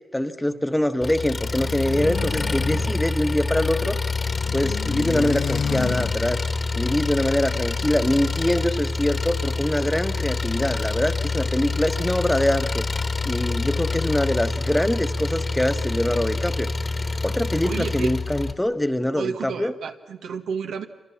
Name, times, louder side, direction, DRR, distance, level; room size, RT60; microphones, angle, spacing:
voice 1, 0.1-4.0 4.5-6.4 6.8-12.8 13.2-16.7 17.2-19.7, left 1 dB, 10° left, 9 dB, 1.4 m, -24 dB
Engine, 1.0-18.5, left 3 dB, 35° left, 1.8 m, -27 dB
sound 1, 1.4-3.8 4.1-6.7, left 7 dB, 75° left, 0.9 m, -31 dB
voice 2, 17.6-18.1 19.2-20.9, right 6 dB, 85° right, 5 dB, 1.5 m, -30 dB
27.5 x 25.5 x 7.3 m, 1.1 s
cardioid pair, 80°, 0 cm